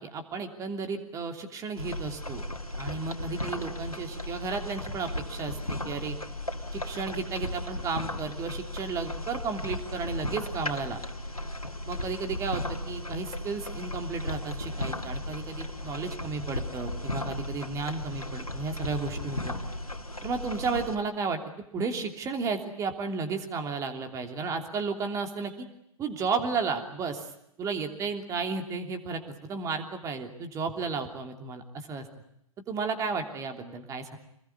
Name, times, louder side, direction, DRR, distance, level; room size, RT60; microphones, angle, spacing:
voice 1, 0.0-2.5 2.8-6.2 6.7-11.0 11.9-19.6 20.2-21.4 21.7-25.7 26.0-27.3 27.6-32.1 32.7-34.2, right 4 dB, 15° right, 5 dB, 3.1 m, -33 dB
sound 1, 1.8-21.0, left 1 dB, 85° left, 2.5 m, -36 dB
27.5 x 21.0 x 9.6 m, 0.77 s
figure-of-eight pair, 115°, 18 cm